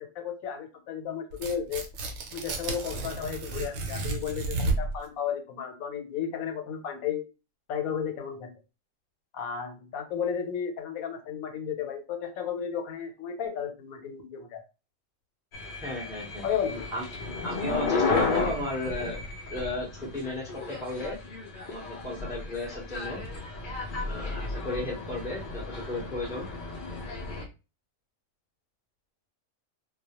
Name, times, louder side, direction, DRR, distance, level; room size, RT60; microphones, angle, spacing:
voice 1, 0.0-1.8 2.3-7.3 7.7-8.5 9.3-14.6 16.4-16.9 18.3-18.5, left 8 dB, 85° left, 5 dB, 1.1 m, -33 dB
Tearing, 1.3-5.0, right 3 dB, 75° right, 1.0 m, -32 dB
sound 1, 15.5-27.4, left 3 dB, 60° left, 0.5 m, -33 dB
voice 2, 15.8-16.5 16.9-17.0 17.4-19.2 19.5-21.2 21.7-23.2 24.0-26.5, left 1 dB, 5° right, -4 dB, 0.6 m, -34 dB
2.3 x 2.1 x 2.8 m, 0.29 s
omnidirectional pair, 1.4 m